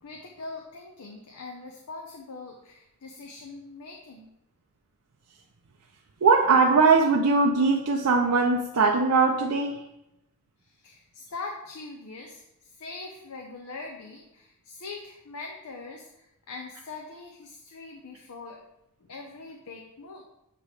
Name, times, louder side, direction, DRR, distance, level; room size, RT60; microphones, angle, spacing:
voice 1, 0.0-4.3 10.6-18.6 19.0-20.2, left 3 dB, 90° left, 1 dB, 0.7 m, -42 dB
voice 2, 6.2-9.8, right 4 dB, 85° right, 1 dB, 0.6 m, -20 dB
7.7 x 3.0 x 4.9 m, 0.87 s
head